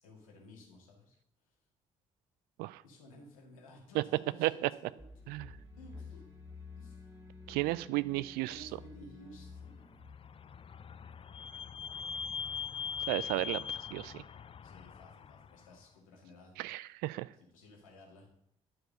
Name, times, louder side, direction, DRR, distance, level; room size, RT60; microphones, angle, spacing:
voice 1, 0.0-1.2 2.8-5.0 5.7-6.2 6.8-7.0 8.5-10.0 14.6-16.5 17.5-18.3, left 1 dB, 80° left, -1 dB, 2.0 m, -55 dB
sound 1, 5.0-10.7, left 4 dB, 20° right, 2.8 m, -51 dB
voice 2, 7.5-8.7 13.1-13.6 13.9-14.2 16.6-17.3, right 19 dB, 65° right, 18 dB, 0.4 m, -33 dB
Vehicle / Squeak, 9.9-15.5, left 7 dB, 35° left, 0.5 m, -41 dB
11.0 x 4.8 x 6.5 m, 0.74 s
figure-of-eight pair, 40°, 17 cm